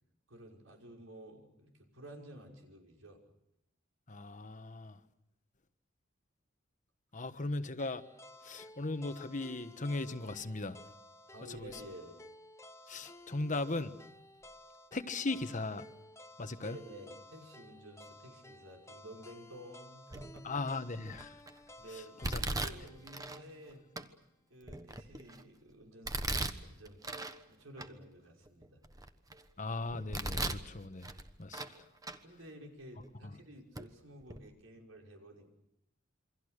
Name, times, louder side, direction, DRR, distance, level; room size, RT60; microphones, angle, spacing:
voice 1, 0.3-3.2 11.3-12.2 16.6-20.5 21.8-23.8 24.5-27.0 27.5-28.8 32.2-35.5, right 1 dB, 90° right, 5.7 m, -52 dB
voice 2, 4.1-5.0 7.1-8.0 8.4-10.8 11.5-11.8 12.9-14.0 14.9-15.8 16.4-16.8 20.4-21.4 22.2-22.7 29.6-31.1 31.4-31.6 33.2-33.3, left 2 dB, 40° left, 1.2 m, -38 dB
sound 1, 7.8-23.9, left 1 dB, 15° left, 1.1 m, -55 dB
Domestic sounds home sounds, 20.1-20.5 21.1-21.5 22.2-23.4 24.0-24.1 24.6-25.4 26.0-27.4 27.8-27.9 28.5-29.4 29.9-30.7 31.0-31.8 32.0-32.2 33.0-33.1 33.7-33.9 34.2-34.4, right 2 dB, 20° right, 1.2 m, -38 dB
28.0 x 24.5 x 6.6 m
head